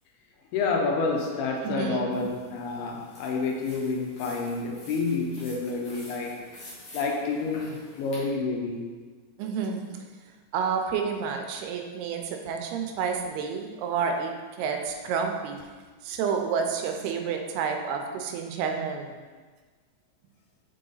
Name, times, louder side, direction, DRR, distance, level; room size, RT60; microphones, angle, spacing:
voice 1, 0.5-6.5 6.9-8.9, left 4 dB, 80° left, 1 dB, 2.7 m, -29 dB
voice 2, 1.6-2.2 9.4-10.0 10.5-14.3 14.6-15.6 16.0-19.2, right 6 dB, 85° right, 4 dB, 2.6 m, -29 dB
sound 1, 2.1-8.2, left 1 dB, 50° left, 1.9 m, -48 dB
6.2 x 3.9 x 3.9 m, 1.4 s
omnidirectional pair, 4.5 m